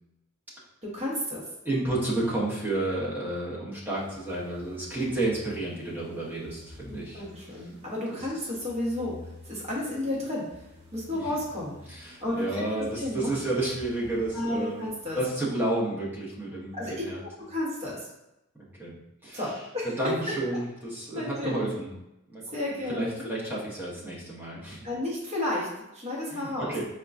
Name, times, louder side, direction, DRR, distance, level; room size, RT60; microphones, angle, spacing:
voice 1, 0.8-1.4 6.9-9.2 9.4-10.5 10.9-11.8 12.2-12.6 13.0-13.4 14.3-15.2 16.7-18.1 19.3-19.9 20.2-20.6 21.1-21.7 22.5-23.3 24.8-26.7, left 1 dB, 30° right, -5 dB, 1.0 m, -32 dB
voice 2, 1.6-7.2 8.1-8.2 11.9-14.8 15.1-17.2 18.5-18.9 19.2-19.4 20.0-21.9 22.3-22.4 22.9-24.8 26.3-26.8, right 2 dB, 10° right, -6 dB, 0.8 m, -31 dB
sound 1, 3.9-15.7, left 2 dB, 55° right, 0.6 m, -50 dB
4.3 x 2.2 x 2.5 m, 0.91 s
head